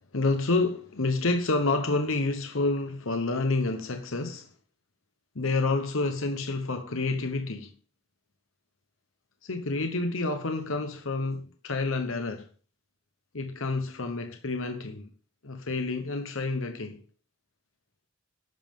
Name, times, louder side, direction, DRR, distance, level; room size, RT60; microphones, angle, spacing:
voice 1, 0.0-4.5 5.3-7.7 9.4-12.5 13.3-15.1 15.4-17.0, left 3 dB, 80° left, 1.2 m, -29 dB
13.0 x 10.5 x 3.8 m
head